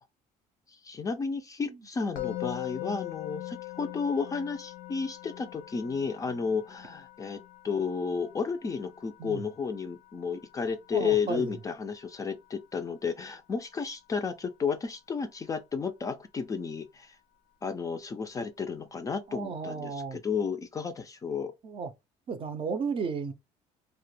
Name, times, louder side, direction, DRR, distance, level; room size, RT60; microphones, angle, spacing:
voice 1, 0.8-7.4 7.6-17.1 17.6-21.5, left 5 dB, 25° left, 0.3 m, -32 dB
Musical instrument, 2.2-13.3, left 18 dB, 90° left, 0.5 m, -43 dB
voice 2, 10.9-11.5 19.3-20.2 21.6-21.9 22.3-23.3, right 5 dB, 40° right, 0.5 m, -34 dB
2.1 x 2.1 x 3.1 m
cardioid pair, 110°, 14 cm